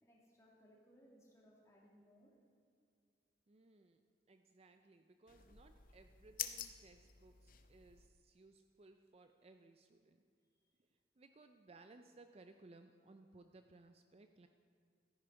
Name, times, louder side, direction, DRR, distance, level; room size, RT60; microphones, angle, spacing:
voice 1, 0.0-2.3, equal, 15° left, -3 dB, 2.5 m, -66 dB
voice 2, 3.5-4.0 4.3-10.2 11.2-14.5, right 3 dB, 35° right, 7 dB, 0.5 m, -62 dB
sound 1, 5.3-8.1, left 11 dB, 50° left, 0.6 m, -48 dB
14.0 x 10.5 x 4.5 m, 2.3 s
head